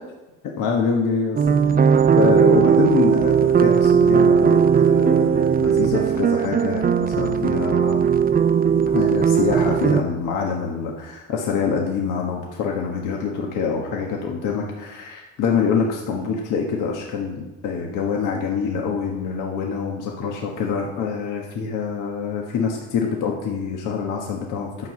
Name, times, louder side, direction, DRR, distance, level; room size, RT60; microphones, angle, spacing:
voice 1, 0.6-1.4 2.2-8.0 8.9-24.9, left 5 dB, 85° left, 0 dB, 1.4 m, -25 dB
sound 1, 1.4-10.0, right 7 dB, 30° right, 0.5 m, -18 dB
10.5 x 6.2 x 7.4 m, 1.1 s
cardioid pair, 90°, 30 cm